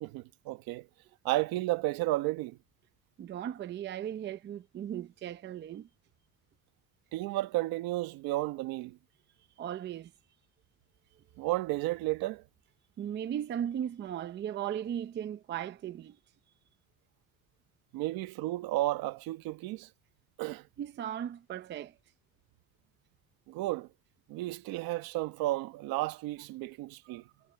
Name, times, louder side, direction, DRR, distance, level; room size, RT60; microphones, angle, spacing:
voice 1, 0.0-0.9 1.2-2.6 7.1-9.0 11.4-12.4 17.9-19.9 20.4-20.7 23.5-23.9 24.3-27.2, right 18 dB, 75° right, 1.3 m, -32 dB
voice 2, 3.2-5.9 9.6-10.1 11.4-11.5 13.0-16.2 20.8-22.0 27.0-27.2, right 10 dB, 30° right, 0.7 m, -37 dB
cardioid pair, 165°, 36 cm